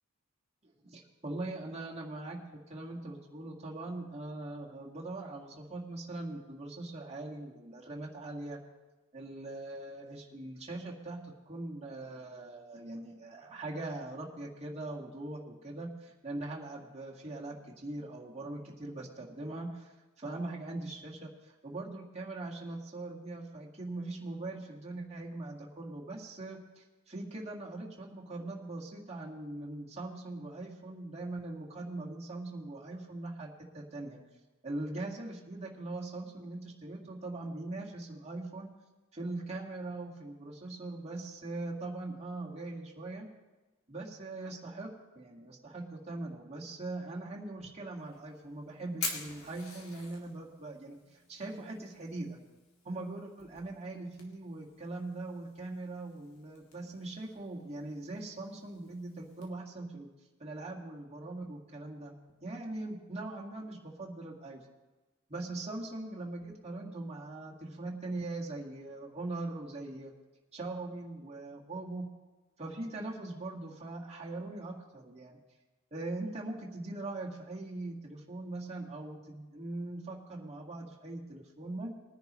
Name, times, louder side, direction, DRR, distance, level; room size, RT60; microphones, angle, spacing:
voice 1, 0.6-8.6 9.1-34.2 34.6-38.7 39.1-43.3 43.9-52.4 52.8-60.1 60.4-62.2 62.4-64.6 65.3-70.1 70.5-72.1 72.6-75.4 75.9-81.9, right 2 dB, 30° right, -3 dB, 1.9 m, -41 dB
Fire, 48.0-59.5, left 3 dB, 85° left, 2.4 m, -47 dB
21.0 x 10.5 x 3.1 m, 1.2 s
head